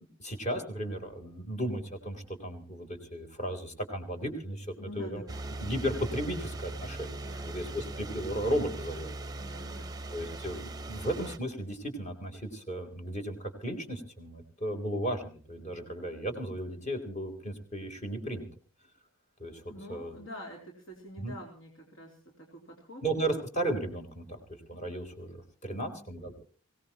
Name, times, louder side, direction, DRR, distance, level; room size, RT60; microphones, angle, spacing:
voice 1, 0.2-5.2 5.6-9.1 10.1-18.5 19.4-20.2 21.2-21.4 23.0-26.3, right 1 dB, 35° left, 4 dB, 3.7 m, -35 dB
voice 2, 4.8-5.4 7.2-7.5 9.3-9.9 19.7-23.0 25.7-26.0, left 1 dB, 65° left, 0 dB, 3.4 m, -46 dB
sound 1, 5.3-11.4, right 2 dB, 20° right, 0.8 m, -40 dB
24.0 x 17.5 x 3.0 m, 0.39 s
head